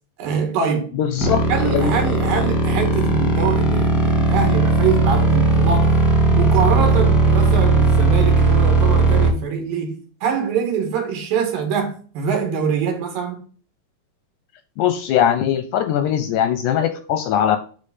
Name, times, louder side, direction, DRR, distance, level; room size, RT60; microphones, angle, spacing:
voice 1, 0.2-0.9 1.5-6.0 6.3-13.4, right 6 dB, 75° right, 3.3 m, -24 dB
voice 2, 1.0-1.4 1.7-1.9 14.8-17.6, left 10 dB, 80° left, 1.9 m, -20 dB
sound 1, 1.2-9.3, right 2 dB, 10° left, 0.9 m, -17 dB
10.0 x 3.4 x 4.2 m
omnidirectional pair, 4.0 m